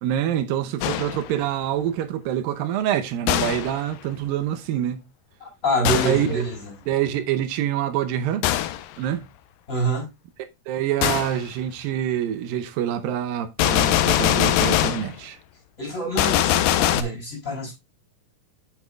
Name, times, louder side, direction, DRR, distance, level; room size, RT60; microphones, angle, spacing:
voice 1, 0.0-5.0 6.0-6.5 6.9-8.5 9.0-9.3 10.7-15.4, right 11 dB, 85° right, 2.6 m, -26 dB
Gunshot gunfire, 0.8-1.3 3.3-3.8 5.8-6.3 8.4-8.9 11.0-11.4 13.6-15.1 16.2-17.0, left 13 dB, 85° left, 2.3 m, -22 dB
voice 2, 5.4-6.7 9.7-10.1 15.8-17.7, right 1 dB, 20° left, 5.9 m, -26 dB
8.7 x 8.2 x 2.3 m
omnidirectional pair, 4.0 m